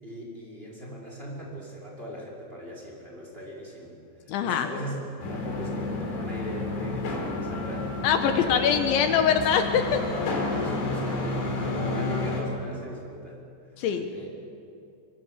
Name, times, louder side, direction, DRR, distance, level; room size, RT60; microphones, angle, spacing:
voice 1, 0.0-4.0 4.2-5.0 5.3-7.9 8.2-8.7 10.6-13.4 13.8-14.3, equal, 10° right, -3 dB, 4.9 m, -38 dB
voice 2, 4.3-4.7 8.0-10.0 13.8-14.1, left 7 dB, 75° left, 7 dB, 3.4 m, -23 dB
sound 1, 5.2-12.4, left 2 dB, 60° left, 5.6 m, -30 dB
25.0 x 24.0 x 8.1 m, 2.5 s
omnidirectional pair, 5.5 m